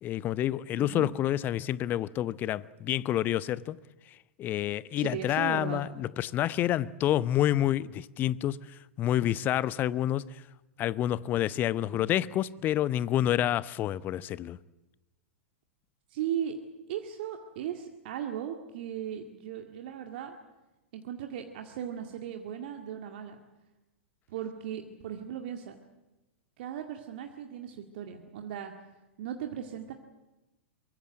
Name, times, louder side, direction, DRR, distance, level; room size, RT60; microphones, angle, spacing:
voice 1, 0.0-3.8 4.4-10.4 10.8-14.6, left 12 dB, 30° left, 0.8 m, -28 dB
voice 2, 0.7-1.1 5.0-5.8 11.9-12.1 16.1-16.6 16.9-20.4 20.9-23.4 24.3-25.8 26.6-28.7 29.2-29.9, right 9 dB, 50° right, 2.0 m, -37 dB
23.5 x 23.5 x 7.7 m
figure-of-eight pair, 100°, 7 cm